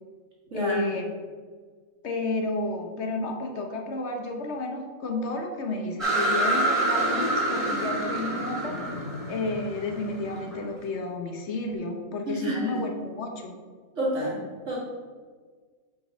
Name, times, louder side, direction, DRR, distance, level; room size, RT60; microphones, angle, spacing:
voice 1, 0.5-1.1 2.0-8.8 9.3-13.6, left 2 dB, 60° left, 3 dB, 1.1 m, -31 dB
sound 1, 6.0-10.5, right 1 dB, ahead, 2.0 m, -27 dB
voice 2, 12.3-12.7 14.0-14.8, right 1 dB, 60° right, -5 dB, 2.3 m, -29 dB
5.2 x 5.1 x 5.0 m, 1.5 s
omnidirectional pair, 1.4 m